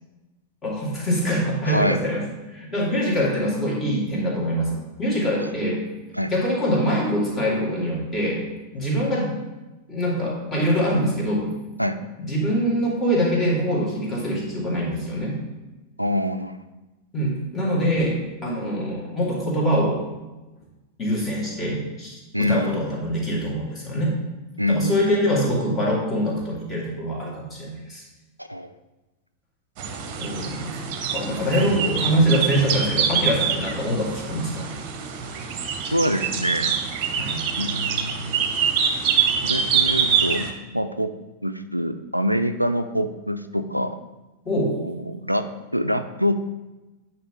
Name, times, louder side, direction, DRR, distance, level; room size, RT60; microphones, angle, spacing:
voice 1, 0.6-2.2 2.5-5.8 6.3-8.4 8.7-9.3 9.9-11.6 12.2-15.3 17.1-20.0 21.0-24.2 24.7-28.0 30.2-30.8 31.1-34.7 37.2-37.4 44.5-44.7, equal, 25° left, -4 dB, 2.2 m, -24 dB
voice 2, 1.7-2.0 5.4-5.5 6.1-6.3 11.8-12.0 16.0-16.6 22.3-22.7 24.6-25.0 28.4-28.7 35.9-36.8 37.6-38.5 38.8-39.0 39.4-41.1 41.4-44.0 44.8-45.4 45.7-46.4, equal, 90° right, 9 dB, 0.3 m, -25 dB
sound 1, 29.8-40.5, right 7 dB, 40° right, 0.8 m, -25 dB
9.1 x 3.1 x 4.9 m, 1.1 s
figure-of-eight pair, 90°, 0 cm